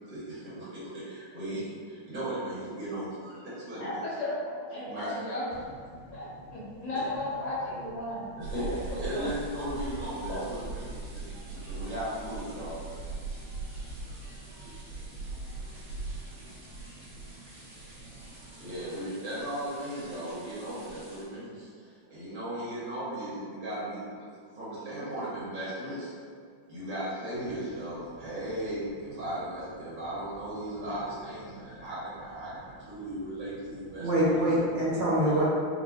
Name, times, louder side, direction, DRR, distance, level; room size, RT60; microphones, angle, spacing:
voice 1, 0.0-4.0 4.9-5.2 8.4-11.2 11.5-12.8 18.5-24.0 24.5-26.1 26.7-34.1 35.2-35.4, right 1 dB, 30° right, -10 dB, 1.2 m, -37 dB
voice 2, 3.8-4.4 4.7-5.5 6.1-8.2 9.1-9.3, left 2 dB, 25° left, -9 dB, 0.9 m, -34 dB
sound 1, 8.4-21.2, right 3 dB, 65° right, 2.4 m, -41 dB
voice 3, 14.6-15.0 15.5-15.6 16.2-16.5 17.3-17.4 34.0-35.4, right 1 dB, 90° right, -8 dB, 2.3 m, -27 dB
5.5 x 2.2 x 3.7 m, 2.1 s
omnidirectional pair, 2.2 m